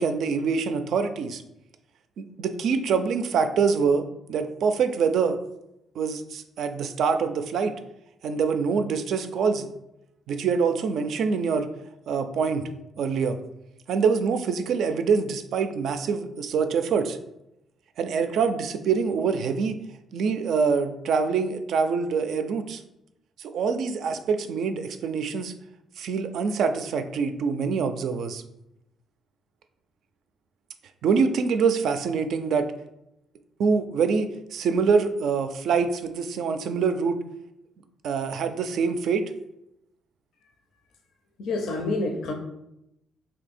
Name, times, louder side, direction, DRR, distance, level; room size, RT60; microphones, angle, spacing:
voice 1, 0.0-1.4 2.2-5.4 6.0-7.7 8.2-9.7 10.3-11.7 12.1-12.7 13.0-13.4 13.9-17.2 18.0-19.7 20.1-22.8 23.4-25.5 26.0-28.4 31.0-32.7 33.6-37.2 38.0-39.2, right 5 dB, 70° right, 8 dB, 0.3 m, -25 dB
voice 2, 41.4-42.3, left 2 dB, 75° left, 3 dB, 0.5 m, -27 dB
2.7 x 2.7 x 4.1 m, 0.85 s
cardioid pair, 90°, 0 cm